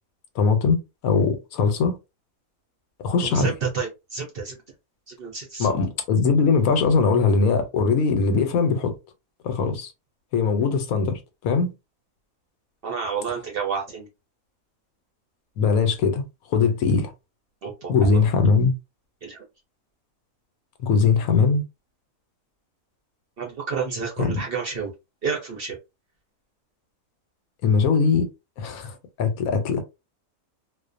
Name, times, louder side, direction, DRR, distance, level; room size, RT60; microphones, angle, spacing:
voice 1, 0.4-2.0 3.0-3.5 5.6-9.0 9.4-9.9 10.3-11.7 15.6-16.2 16.5-17.1 17.9-18.7 20.8-21.6 24.2-24.4 27.6-28.2 28.6-29.8, left 5 dB, 85° left, 1.1 m, -21 dB
voice 2, 3.2-4.6 5.1-5.7 12.8-14.1 17.6-18.2 19.2-19.4 23.4-24.9 25.2-25.8, right 5 dB, 60° right, 0.6 m, -29 dB
2.4 x 2.2 x 2.4 m
omnidirectional pair, 1.5 m